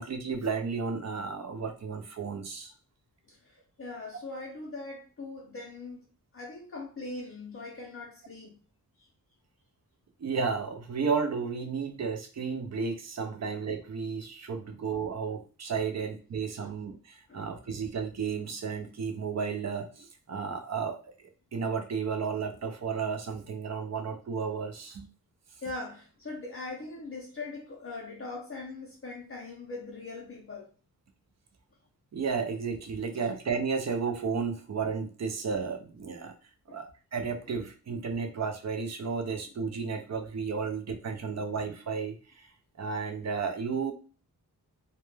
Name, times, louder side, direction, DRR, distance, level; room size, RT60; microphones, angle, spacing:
voice 1, 0.0-2.7 10.2-21.1 21.5-25.1 32.1-36.3 36.7-36.9 37.1-42.5 42.8-43.9, right 5 dB, 45° right, 0.4 m, -33 dB
voice 2, 3.3-6.0 6.3-8.6 16.6-16.7 17.3-17.4 25.6-30.7 36.7-36.8 40.6-40.7 41.3-41.4, left 3 dB, 35° left, 0.5 m, -41 dB
2.2 x 2.1 x 3.1 m
wide cardioid pair, 150°, 37 cm